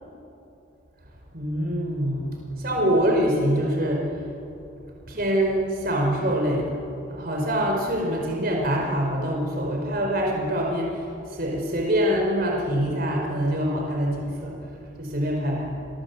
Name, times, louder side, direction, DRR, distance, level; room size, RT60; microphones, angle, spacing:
voice 1, 1.3-4.1 5.1-6.8 7.1-14.6 15.0-15.8, equal, 50° right, 0 dB, 4.6 m, -25 dB
29.0 x 21.5 x 8.2 m, 2.7 s
head